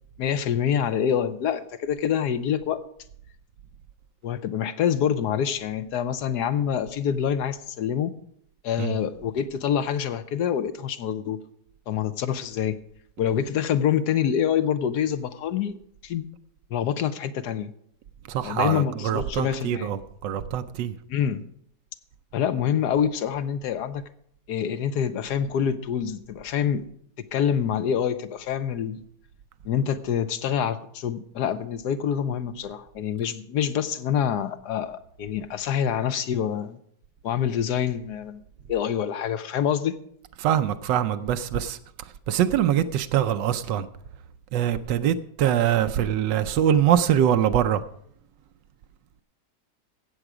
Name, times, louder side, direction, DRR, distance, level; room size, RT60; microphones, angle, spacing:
voice 1, 0.2-2.8 4.2-8.1 8.6-11.4 11.9-12.8 13.2-15.8 16.0-16.3 16.7-17.7 18.4-19.9 21.1-21.4 22.3-24.0 24.5-26.8 27.2-29.0 29.6-36.8 37.2-38.4 38.7-40.0, left 8 dB, 70° left, 1.3 m, -26 dB
voice 2, 18.3-20.9 40.4-41.8 42.3-43.9 44.5-47.8, right 10 dB, 90° right, 1.3 m, -23 dB
15.0 x 8.0 x 4.9 m
omnidirectional pair, 1.9 m